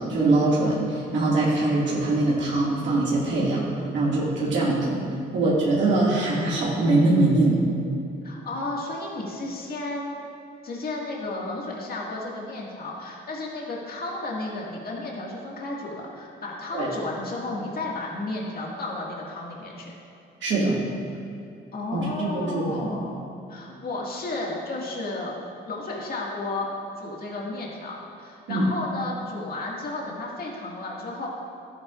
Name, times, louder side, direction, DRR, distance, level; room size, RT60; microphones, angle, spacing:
voice 1, 0.0-3.7 3.9-5.0 5.3-7.6 16.7-16.9 20.4-20.8 21.9-22.9 28.5-28.6, right 2 dB, 65° right, -6 dB, 2.1 m, -22 dB
voice 2, 8.2-10.2 10.6-19.9 21.7-25.3 25.7-31.3, left 2 dB, 50° left, -3 dB, 1.9 m, -33 dB
12.0 x 9.8 x 2.5 m, 2.6 s
cardioid pair, 90°, 20 cm